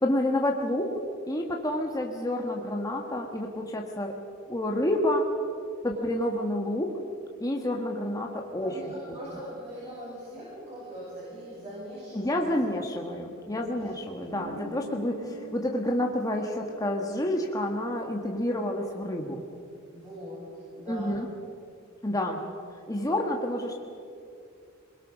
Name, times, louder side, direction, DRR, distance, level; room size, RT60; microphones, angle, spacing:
voice 1, 0.0-0.9 1.3-4.1 4.5-5.2 5.8-6.9 7.4-8.7 12.1-19.4 20.9-21.3 22.0-22.4 22.9-23.8, left 1 dB, 15° left, 1 dB, 1.5 m, -29 dB
voice 2, 8.6-12.5 13.6-13.9 19.9-21.3, equal, 30° right, -9 dB, 7.8 m, -41 dB
Guitar, 14.3-18.9, equal, 80° right, 4.4 m, -46 dB
22.5 x 22.0 x 6.4 m, 2.4 s
head